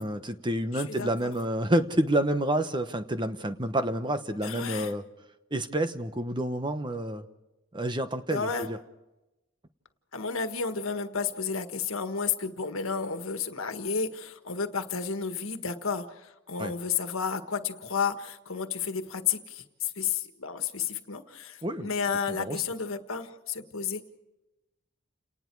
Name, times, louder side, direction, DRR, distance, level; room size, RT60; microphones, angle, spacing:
voice 1, 0.0-5.0 5.5-7.3 7.7-8.8 16.6-16.7 21.6-21.9 22.4-22.6, right 1 dB, 20° right, 9 dB, 1.0 m, -29 dB
voice 2, 0.7-1.1 4.4-4.9 8.3-8.7 10.1-24.0, left 6 dB, 85° left, 8 dB, 1.6 m, -32 dB
29.5 x 19.0 x 4.7 m, 1.0 s
head